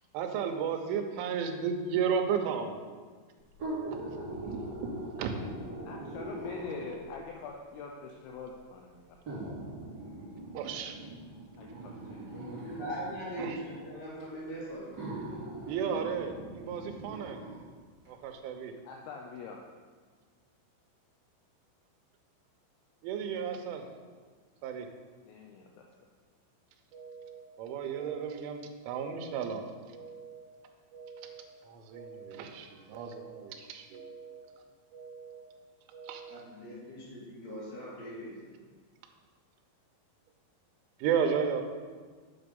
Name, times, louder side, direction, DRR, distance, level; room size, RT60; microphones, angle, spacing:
voice 1, 0.1-2.8 3.9-4.0 4.3-5.4 10.5-11.0 13.4-13.6 15.7-17.4 18.1-18.7 23.0-23.9 24.6-24.9 27.6-29.6 31.6-34.0 36.0-36.2 41.0-41.6, right 7 dB, 80° right, 5 dB, 3.2 m, -33 dB
sound 1, 3.5-7.2 8.1-8.2 9.3-13.2 14.2-14.3 14.9-17.6 18.0-18.1, right 2 dB, 35° right, 1.8 m, -41 dB
voice 2, 5.8-9.2 11.6-12.6 18.8-19.7 25.2-25.9, left 5 dB, 80° left, 1 dB, 2.8 m, -44 dB
voice 3, 12.3-15.5 36.3-38.5, equal, 50° left, -8 dB, 4.0 m, -41 dB
sound 2, 26.9-27.4 27.9-28.4 28.9-29.4 29.9-30.4 30.9-31.4 31.9-32.4 32.9-33.4 33.9-34.4 34.9-35.4 35.9-36.4, right 6 dB, 65° right, 3.0 m, -47 dB
8.0 x 5.9 x 5.3 m, 1.5 s
omnidirectional pair, 5.6 m